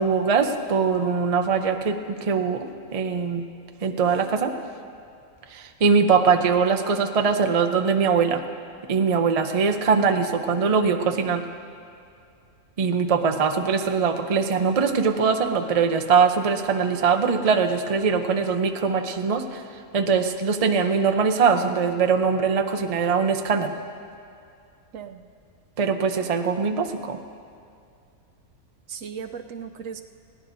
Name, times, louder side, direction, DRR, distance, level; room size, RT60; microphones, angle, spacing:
voice 1, 0.0-3.4 3.8-4.5 5.5-8.4 8.9-11.5 12.8-19.6 19.9-23.8 25.8-27.2, right 5 dB, 50° right, 6 dB, 0.4 m, -22 dB
voice 2, 24.9-25.3 28.9-30.1, right 7 dB, 65° right, 7 dB, 0.9 m, -36 dB
21.0 x 16.5 x 2.7 m, 2.4 s
omnidirectional pair, 1.6 m